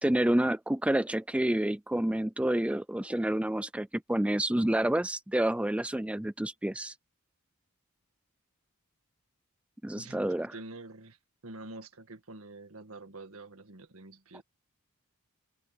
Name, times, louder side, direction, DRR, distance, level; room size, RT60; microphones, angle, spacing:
voice 1, 0.0-6.9 9.8-10.5, right 1 dB, 5° right, 0.4 m, -29 dB
voice 2, 9.9-11.2 11.4-14.4, right 2 dB, 70° right, 1.9 m, -47 dB
head